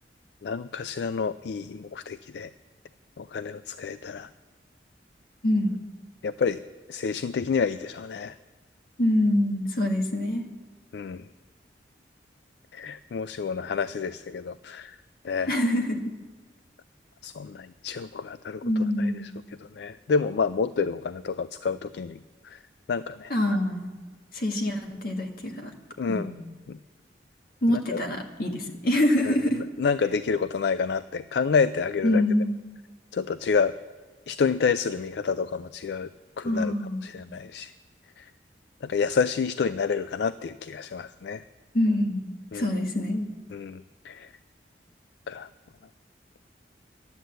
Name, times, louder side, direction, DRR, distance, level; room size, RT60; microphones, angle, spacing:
voice 1, 0.4-2.5 3.2-4.3 6.2-6.6 6.9-8.3 10.9-11.2 12.7-15.0 15.2-15.5 17.2-18.6 19.0-19.1 19.6-22.2 22.4-22.6 22.9-23.3 26.0-26.3 26.7-26.8 27.7-28.0 29.2-32.2 33.1-33.7 34.3-36.1 36.4-36.7 37.0-37.7 38.2-38.3 38.8-41.4 42.5-42.7 43.5-44.3 45.3-45.5, left 5 dB, 70° left, 14 dB, 0.4 m, -29 dB
voice 2, 5.4-5.8 9.0-10.4 15.5-16.1 18.6-19.3 23.3-23.9 24.3-25.7 26.1-26.4 27.6-29.6 32.0-32.5 36.4-37.1 41.7-43.3, left 1 dB, 55° left, 2 dB, 1.8 m, -25 dB
11.5 x 9.3 x 7.9 m, 1.5 s
head